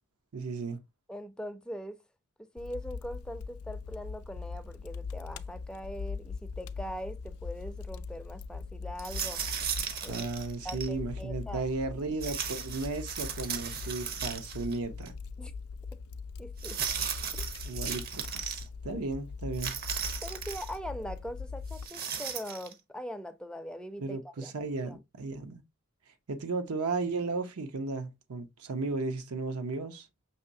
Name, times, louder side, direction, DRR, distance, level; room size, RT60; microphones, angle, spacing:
voice 1, 0.3-0.8 10.1-15.2 17.6-19.8 24.0-25.6 26.3-30.1, right 3 dB, 80° right, 0.7 m, -35 dB
voice 2, 1.1-2.0 2.5-9.4 10.0-10.3 10.6-11.6 15.4-15.5 16.4-16.8 17.3-17.4 18.9-19.0 20.2-24.5 24.8-25.0, equal, 5° left, 0.4 m, -41 dB
Fire, 2.6-21.9, left 4 dB, 75° left, 0.4 m, -41 dB
sound 1, 9.0-10.9 12.2-14.8 15.1-15.2 16.6-18.6 19.5-20.8 21.7-22.7, right 7 dB, 45° right, 0.7 m, -36 dB
5.7 x 3.0 x 2.6 m
head